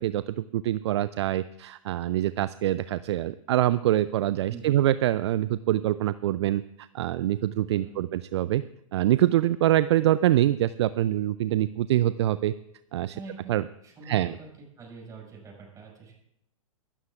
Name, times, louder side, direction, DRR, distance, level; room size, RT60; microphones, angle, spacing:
voice 1, 0.0-8.6 8.9-12.5 12.9-13.1 13.5-13.6 14.1-14.3, right 13 dB, 55° right, 16 dB, 0.4 m, -25 dB
voice 2, 4.5-4.9 7.7-8.1 13.1-13.6 13.8-14.5 14.8-16.1, right 3 dB, 20° right, -1 dB, 5.6 m, -44 dB
23.5 x 13.0 x 2.4 m, 0.80 s
figure-of-eight pair, 110°, 18 cm